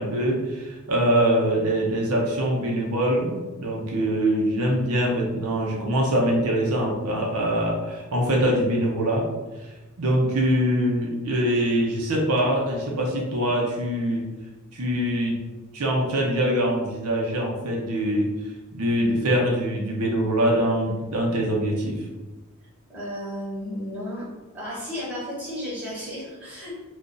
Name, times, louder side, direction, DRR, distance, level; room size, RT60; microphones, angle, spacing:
voice 1, 0.0-9.2 10.0-14.2 14.7-15.3 15.7-18.3 18.7-22.0, right 1 dB, 80° right, -1 dB, 0.7 m, -23 dB
voice 2, 22.9-24.3 24.5-26.8, equal, 5° right, -9 dB, 1.0 m, -33 dB
2.5 x 2.3 x 3.8 m, 1.2 s
head